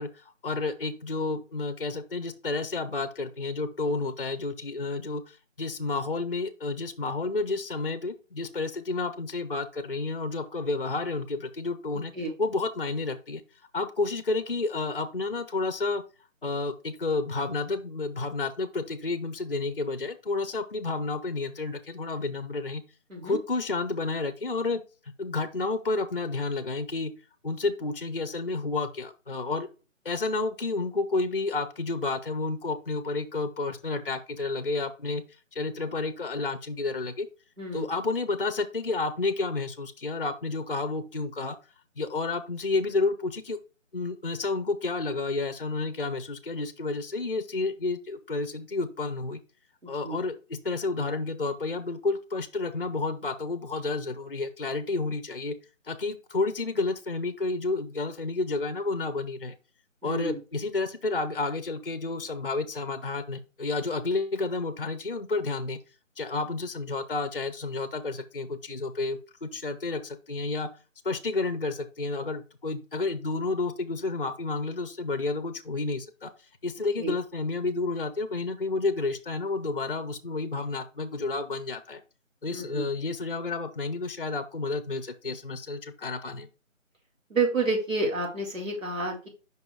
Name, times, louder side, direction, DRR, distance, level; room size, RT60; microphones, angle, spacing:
voice 1, 0.0-13.4 13.7-16.0 16.4-22.8 23.2-24.8 25.2-27.1 27.4-29.7 30.0-35.2 35.5-37.3 37.7-41.6 42.0-43.6 43.9-49.4 49.9-55.6 55.9-59.5 60.0-65.8 66.2-70.7 71.0-76.3 76.6-82.0 82.4-86.5, left 3 dB, 45° left, 10 dB, 0.5 m, -30 dB
voice 2, 60.0-60.4 77.0-77.1 82.5-82.9 87.3-89.3, right 3 dB, 85° right, -1 dB, 3.4 m, -29 dB
5.3 x 4.0 x 4.6 m, 0.33 s
figure-of-eight pair, 175°, 39 cm